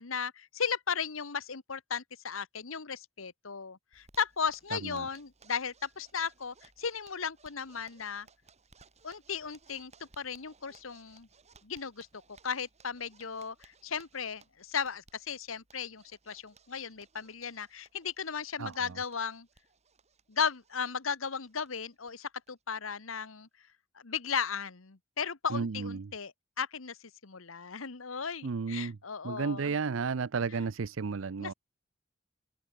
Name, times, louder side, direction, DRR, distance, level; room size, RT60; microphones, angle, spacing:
voice 1, 0.0-8.3 9.0-11.3 11.6-12.1 12.4-19.5 20.3-23.5 24.0-27.0 27.2-29.7 31.4-31.5, left 6 dB, 90° left, 1.3 m, -36 dB
Zipper (clothing), 3.9-22.1 22.4-22.5 22.8-22.9 23.2-23.7, right 4 dB, 35° right, 4.9 m, -63 dB
voice 2, 4.7-5.1 18.6-19.0 25.5-26.1 28.4-29.0 29.2-31.5, right 5 dB, 70° right, 0.6 m, -33 dB
open air
head